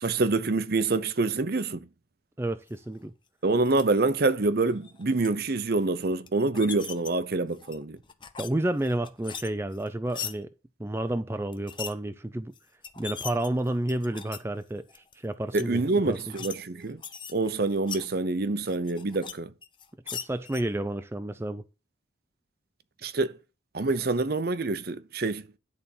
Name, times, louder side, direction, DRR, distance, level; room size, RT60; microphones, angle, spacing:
voice 1, 0.0-1.9 3.4-8.0 15.5-17.0 17.3-19.5 23.0-23.4 23.7-25.4, right 3 dB, 55° right, 0.7 m, -26 dB
voice 2, 2.4-3.1 8.4-10.5 10.8-12.5 13.0-16.2 20.1-21.6, right 1 dB, 15° right, 0.4 m, -30 dB
sound 1, 3.7-3.8 4.7-5.3 6.3-7.1 7.5-8.5 8.8-10.3 11.5-11.9 12.5-12.6 12.8-14.4 14.9-15.1 15.5-15.6 16.1-16.5 16.8-18.1 18.6-19.3 19.6-20.6, left 7 dB, 25° left, 0.8 m, -39 dB
10.5 x 4.1 x 7.1 m
head